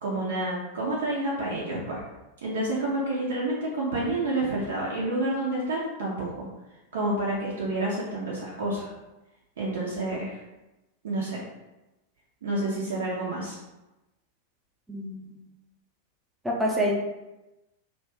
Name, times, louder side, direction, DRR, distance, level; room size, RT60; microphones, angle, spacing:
voice 1, 0.0-2.0 2.4-6.5 6.9-8.9 9.6-10.4 11.0-11.4 12.4-13.6, right 2 dB, 60° right, -5 dB, 0.5 m, -29 dB
voice 2, 14.9-15.4 16.4-16.9, equal, 5° right, -3 dB, 0.6 m, -27 dB
2.4 x 2.2 x 3.3 m, 1.0 s
figure-of-eight pair, 90°, 0 cm